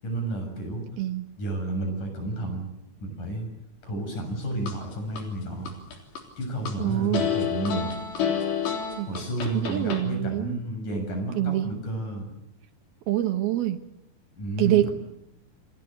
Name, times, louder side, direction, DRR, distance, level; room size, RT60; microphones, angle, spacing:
voice 1, 0.0-0.9 1.4-2.7 3.0-3.5 3.8-5.7 6.4-7.9 9.0-12.3 14.4-14.9, right 1 dB, 45° left, 5 dB, 8.6 m, -31 dB
sound 1, 4.2-5.2 5.7-6.7 7.1-10.0, left 7 dB, 70° left, 5.6 m, -29 dB
voice 2, 6.8-7.3 9.0-9.1 9.5-10.6 11.4-11.7 13.1-13.8 14.6-14.9, right 14 dB, 70° right, 8 dB, 2.7 m, -25 dB
28.0 x 22.0 x 8.1 m, 0.80 s
omnidirectional pair, 5.2 m